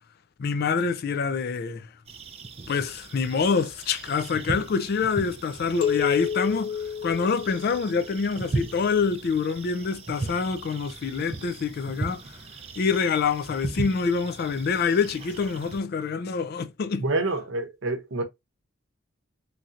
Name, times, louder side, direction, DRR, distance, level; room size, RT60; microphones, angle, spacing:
voice 1, 0.4-1.9 2.7-12.2 12.8-17.1, left 5 dB, 50° left, 0.3 m, -26 dB
sound 1, 2.1-15.8, right 3 dB, 30° right, 0.4 m, -37 dB
sound 2, 5.8-8.2, left 7 dB, 65° left, 1.0 m, -29 dB
voice 2, 17.0-18.2, right 2 dB, 65° right, 0.7 m, -27 dB
3.1 x 2.8 x 2.4 m
head